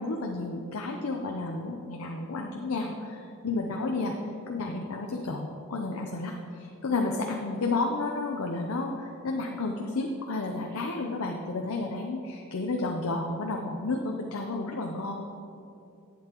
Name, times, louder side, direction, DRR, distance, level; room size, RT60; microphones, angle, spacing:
voice 1, 0.0-4.1 4.5-15.2, left 3 dB, 85° left, 1 dB, 0.6 m, -31 dB
11.0 x 8.6 x 3.0 m, 2.6 s
head